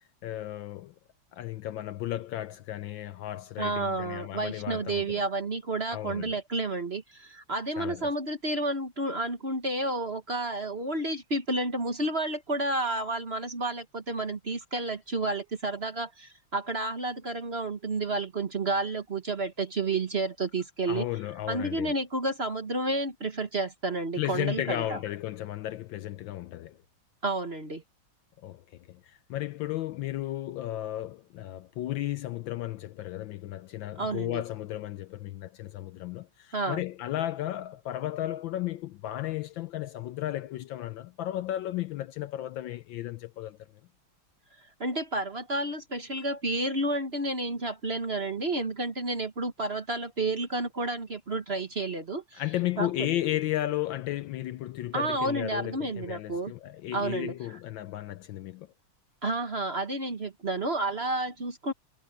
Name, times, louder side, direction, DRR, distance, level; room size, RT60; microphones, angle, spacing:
voice 1, 0.2-0.9 1.3-5.2 5.9-6.3 7.8-8.1 20.9-21.9 24.2-26.8 28.4-43.6 52.4-58.7, left 14 dB, 75° left, 1.2 m, -34 dB
voice 2, 3.6-21.1 21.5-25.0 27.2-27.8 34.0-34.4 36.5-36.8 44.8-52.4 52.8-52.9 54.9-56.5 56.9-57.3 59.2-61.7, right 2 dB, 35° right, 1.4 m, -31 dB
omnidirectional pair, 2.4 m